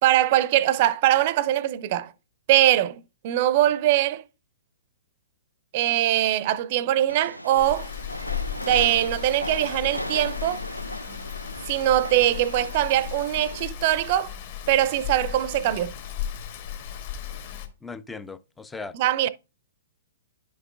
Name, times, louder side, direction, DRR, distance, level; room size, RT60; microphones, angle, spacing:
voice 1, 0.0-2.1 2.5-4.2 5.7-7.9 8.6-10.6 11.7-14.3 14.7-15.9 18.9-19.3, right 13 dB, 40° right, 0.6 m, -22 dB
Train, 7.1-13.6, equal, 90° left, 0.6 m, -36 dB
Rain, 7.6-17.7, left 10 dB, 45° left, 2.4 m, -36 dB
voice 2, 17.8-18.9, left 4 dB, 5° left, 0.5 m, -38 dB
10.5 x 6.3 x 2.5 m
figure-of-eight pair, 115°, 0 cm